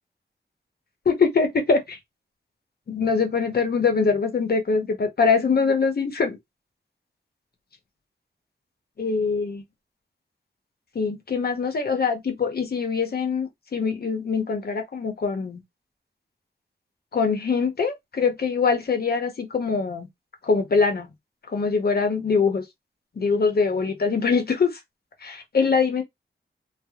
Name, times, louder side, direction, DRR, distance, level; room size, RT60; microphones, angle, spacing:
voice 1, 1.1-2.0 2.9-6.4 9.0-9.6 10.9-15.6 17.1-20.1 20.4-21.1 21.5-22.6 23.2-24.8 25.2-26.0, left 5 dB, 55° left, 0.8 m, -23 dB
3.3 x 2.0 x 2.3 m
wide cardioid pair, 85°, 19 cm